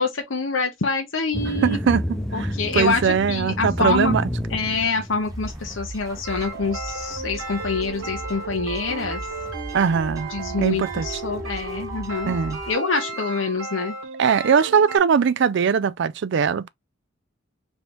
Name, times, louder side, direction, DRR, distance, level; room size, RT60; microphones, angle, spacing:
voice 1, 0.0-1.8 2.3-4.2 4.5-9.2 10.3-12.4 12.7-13.9, left 4 dB, 80° left, 0.9 m, -26 dB
sound 1, 1.3-5.9, equal, 5° left, 0.7 m, -29 dB
voice 2, 1.6-4.2 9.7-10.3 10.6-11.1 12.3-12.6 14.2-16.7, right 6 dB, 60° right, 0.4 m, -21 dB
sound 2, 5.2-12.7, right 1 dB, 15° right, 1.2 m, -38 dB
sound 3, 6.2-15.0, right 3 dB, 80° right, 1.2 m, -34 dB
3.4 x 2.8 x 4.3 m
head